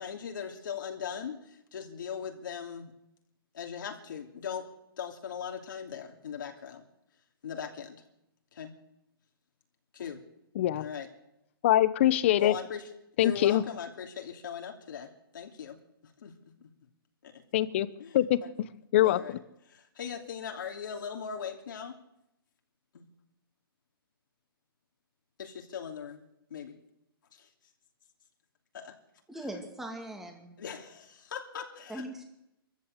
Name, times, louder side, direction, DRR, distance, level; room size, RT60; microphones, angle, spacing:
voice 1, 0.0-2.9 3.5-4.7 5.0-6.8 7.4-8.0 8.5-8.7 9.9-10.2 10.8-11.1 12.4-12.9 13.2-15.8 16.0-16.3 16.6-16.7 17.2-17.4 18.0-18.5 19.0-19.3 19.7-21.9 22.9-23.0 25.4-26.2 26.5-26.8 27.3-27.5 28.7-28.9 30.6-32.0, left 7 dB, 55° left, 2 dB, 2.9 m, -39 dB
voice 2, 11.6-12.6 13.2-13.6 17.5-17.9 18.1-18.7 18.9-19.4, left 13 dB, 30° left, 17 dB, 0.9 m, -24 dB
voice 3, 29.3-30.6 31.9-32.2, right 1 dB, 5° right, 3 dB, 2.3 m, -40 dB
25.0 x 14.5 x 8.1 m, 0.87 s
hypercardioid pair, 165°, 13 cm